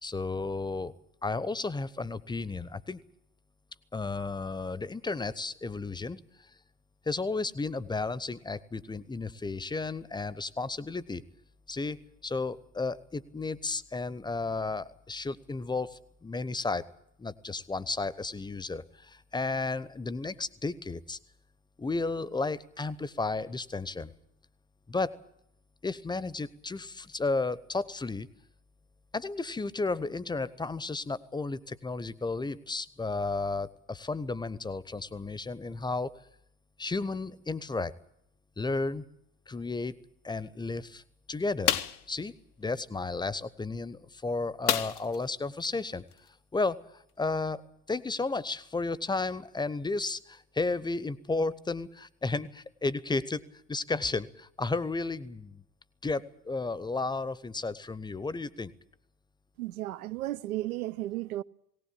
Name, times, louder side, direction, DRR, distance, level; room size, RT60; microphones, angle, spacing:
voice 1, 0.0-0.9 1.2-3.0 3.9-6.2 7.1-11.2 11.7-16.9 17.2-21.2 21.8-24.1 24.9-25.1 25.8-28.3 29.1-36.1 36.8-37.9 38.6-39.0 39.5-40.0 40.2-41.0 41.3-41.8 42.1-46.1 46.5-47.6 47.9-53.4 53.7-55.6 56.0-58.7, left 3 dB, 10° left, 0.9 m, -33 dB
sound 1, 41.7-42.1 44.7-45.2 45.6-45.7 46.1-46.3, left 10 dB, 75° left, 1.1 m, -28 dB
voice 2, 59.6-61.4, right 15 dB, 70° right, 0.8 m, -34 dB
19.0 x 18.5 x 8.5 m
figure-of-eight pair, 65°, 45 cm